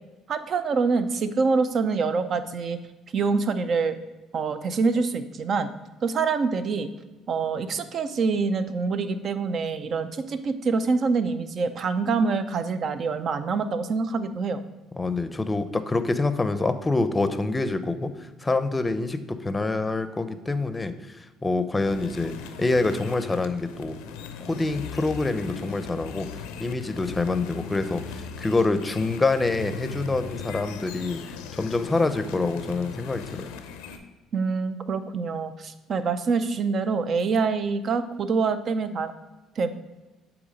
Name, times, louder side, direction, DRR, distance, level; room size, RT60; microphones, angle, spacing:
voice 1, 0.3-2.8 3.1-3.9 4.3-5.7 6.0-6.9 7.3-14.6 34.3-39.1 39.6-39.7, right 4 dB, 50° right, 11 dB, 0.5 m, -25 dB
voice 2, 15.0-24.0 24.4-26.3 26.6-31.2 31.5-33.5, left 3 dB, 20° left, 11 dB, 0.6 m, -26 dB
sound 1, 21.8-34.0, left 6 dB, 85° left, 0.5 m, -39 dB
8.1 x 2.9 x 5.0 m, 1.2 s
hypercardioid pair, 65°, 0 cm